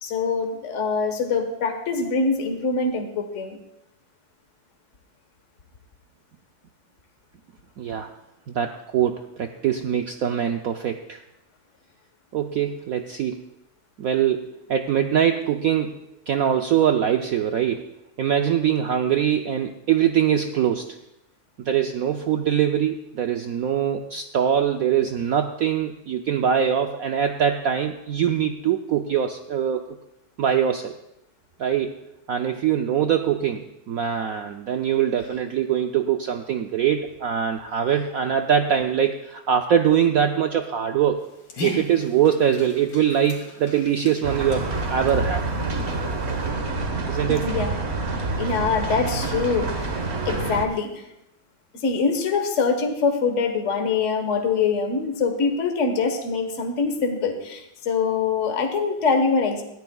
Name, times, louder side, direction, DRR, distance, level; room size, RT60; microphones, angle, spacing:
voice 1, 0.0-3.6 47.4-47.7 48.4-49.9 50.2-51.0 51.8-59.6, left 4 dB, 40° left, 5 dB, 1.5 m, -24 dB
voice 2, 7.8-8.1 8.5-11.2 12.3-13.4 14.0-16.0 16.3-17.9 18.2-21.0 21.6-29.8 30.4-30.9 31.6-32.0 32.3-41.3 41.6-45.4 47.1-47.5, right 9 dB, 70° right, 5 dB, 0.8 m, -23 dB
Dog, 41.2-46.5, left 2 dB, 75° left, 2.7 m, -39 dB
sound 1, 44.2-50.6, right 3 dB, 40° right, 1.3 m, -27 dB
20.5 x 14.0 x 2.3 m, 0.85 s
omnidirectional pair, 2.1 m